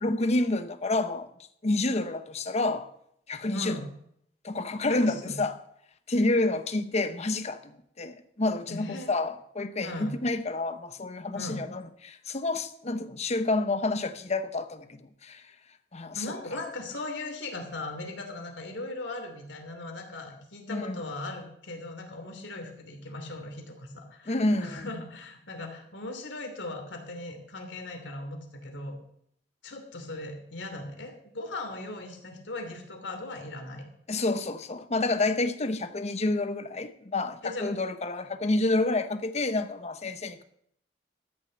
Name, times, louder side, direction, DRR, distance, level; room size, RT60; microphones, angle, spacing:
voice 1, 0.0-1.3 1.6-2.9 3.3-3.8 4.4-5.5 6.1-7.7 8.0-15.4 15.9-16.2 20.7-21.0 24.3-24.9 34.1-40.4, left 2 dB, 40° left, 0.9 m, -29 dB
voice 2, 3.5-3.9 4.9-5.4 8.7-9.1 9.8-10.1 11.3-11.6 16.1-29.0 29.6-33.9 37.4-37.7, left 2 dB, 90° left, 2.8 m, -38 dB
13.5 x 6.7 x 7.8 m
head